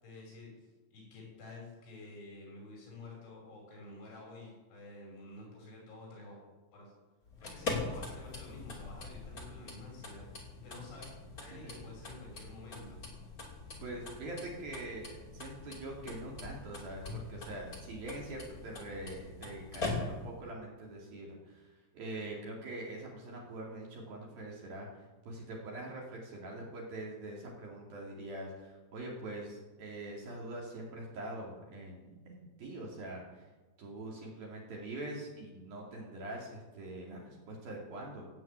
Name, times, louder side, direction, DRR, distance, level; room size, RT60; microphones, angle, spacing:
voice 1, 0.0-6.4 6.7-6.9 7.4-11.1 11.4-13.0, left 2 dB, 65° left, -1 dB, 7.9 m, -50 dB
sound 1, 7.2-20.4, left 3 dB, 25° left, 2.2 m, -43 dB
voice 2, 13.8-33.5 33.8-38.3, right 1 dB, 50° right, -2 dB, 3.9 m, -44 dB
15.5 x 8.7 x 8.8 m, 1.2 s
omnidirectional pair, 5.9 m